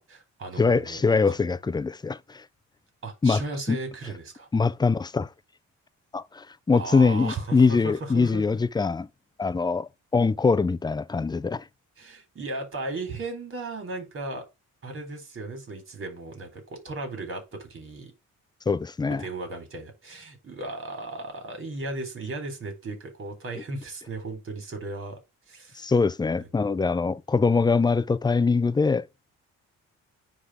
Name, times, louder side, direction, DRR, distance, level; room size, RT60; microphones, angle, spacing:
voice 1, 0.0-1.4 3.0-4.5 6.7-8.4 12.0-14.4 14.8-18.1 19.0-25.2 25.5-25.9 26.4-26.5, right 2 dB, 45° right, 3.8 m, -36 dB
voice 2, 0.6-2.4 3.2-3.4 3.7-3.8 4.5-5.3 6.1-9.1 9.4-11.6 18.7-19.2 25.8-29.1, left 4 dB, 15° left, 0.5 m, -23 dB
9.7 x 3.7 x 4.8 m
cardioid pair, 90°, 30 cm